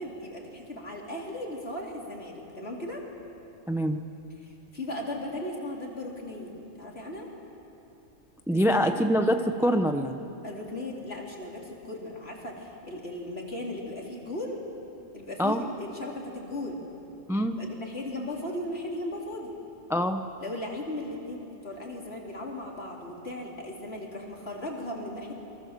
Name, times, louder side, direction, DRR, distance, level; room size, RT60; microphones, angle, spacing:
voice 1, 0.0-3.0 4.4-7.3 8.5-9.1 10.4-14.6 15.1-16.8 17.6-19.5 20.4-25.3, left 1 dB, 55° left, -2 dB, 4.0 m, -37 dB
voice 2, 3.7-4.0 8.5-10.2 15.4-15.6 17.3-17.6 19.9-20.2, equal, 5° right, 7 dB, 0.7 m, -24 dB
28.0 x 23.5 x 7.6 m, 3.0 s
omnidirectional pair, 1.3 m